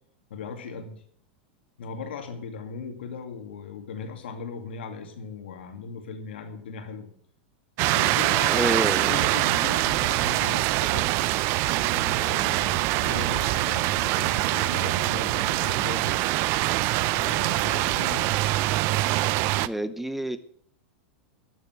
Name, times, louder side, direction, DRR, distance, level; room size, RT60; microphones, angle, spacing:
voice 1, 0.3-1.0 1.8-7.1 7.8-11.1 11.8-16.2 17.1-18.4, left 5 dB, 85° left, 2.3 m, -38 dB
sound 1, 7.8-19.7, right 18 dB, 45° right, 0.5 m, -24 dB
voice 2, 8.5-9.3 19.6-20.4, right 1 dB, 5° right, 0.7 m, -28 dB
13.0 x 7.1 x 7.7 m
hypercardioid pair, 125°, 6 cm